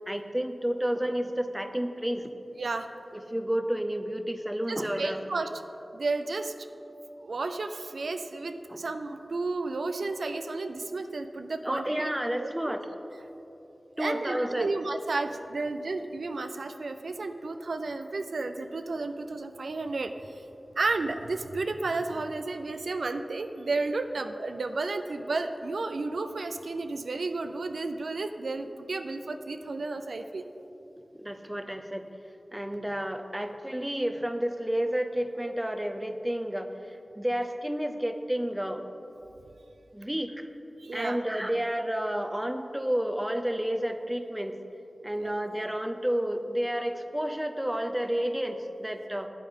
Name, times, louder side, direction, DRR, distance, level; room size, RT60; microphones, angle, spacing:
voice 1, 0.1-2.2 3.1-5.2 8.7-8.8 11.6-12.9 14.0-14.7 31.2-32.1 32.5-38.8 39.9-40.5 40.9-44.6 45.0-49.3, equal, 10° right, 7 dB, 0.6 m, -30 dB
voice 2, 4.7-5.5 5.9-6.5 7.2-12.1 12.4-12.8 14.0-20.4 20.8-30.4 40.8-41.2 45.2-45.4, right 3 dB, 85° right, 7 dB, 0.3 m, -32 dB
8.5 x 8.5 x 3.6 m, 3.0 s
wide cardioid pair, 50°, 0 cm